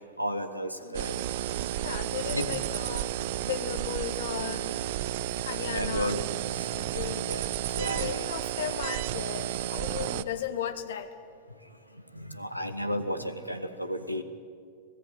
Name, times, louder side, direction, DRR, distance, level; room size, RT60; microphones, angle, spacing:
voice 1, 0.2-1.2 2.3-2.5 5.7-6.2 6.5-6.7 7.3-7.4 7.7-8.2 12.1-14.2, equal, 90° left, 8 dB, 1.5 m, -32 dB
voice 2, 0.8-1.1 1.8-3.2 3.4-4.7 5.4-6.2 6.7-7.3 7.6-11.2, left 9 dB, 60° left, 9 dB, 1.6 m, -36 dB
sound 1, 0.9-10.2, right 13 dB, 50° right, 0.7 m, -32 dB
26.0 x 18.0 x 9.5 m, 2.3 s
figure-of-eight pair, 90°, 0 cm